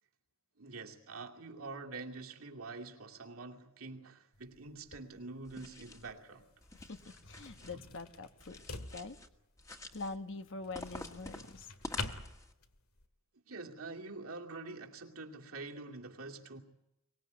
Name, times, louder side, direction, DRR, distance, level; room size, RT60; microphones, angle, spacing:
voice 1, 0.6-6.5 7.7-7.8 13.5-16.6, right 3 dB, 80° right, 2.6 m, -46 dB
sound 1, 4.3-13.1, left 3 dB, 90° left, 2.0 m, -48 dB
sound 2, 5.4-6.1 6.6-7.7 8.4-9.3 9.6-10.2 10.7-12.5, left 1 dB, 15° left, 1.8 m, -48 dB
voice 2, 6.7-8.6 8.9-9.2 9.9-11.7, left 3 dB, 65° left, 1.2 m, -44 dB
24.0 x 19.0 x 9.4 m
head